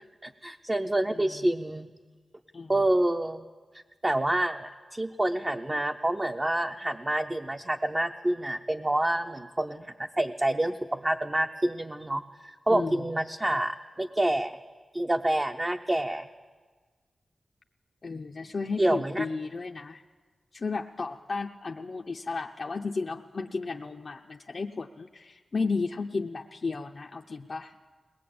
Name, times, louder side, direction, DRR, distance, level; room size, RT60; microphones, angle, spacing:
voice 1, 0.2-1.9 2.7-3.4 3.7-14.6 14.9-16.3 18.8-19.3, right 1 dB, 20° right, 4 dB, 0.6 m, -28 dB
voice 2, 12.7-13.0 18.0-20.0 20.5-27.7, left 4 dB, 40° left, 2 dB, 0.6 m, -33 dB
21.5 x 19.5 x 8.6 m, 1.5 s
wide cardioid pair, 165°, 0 cm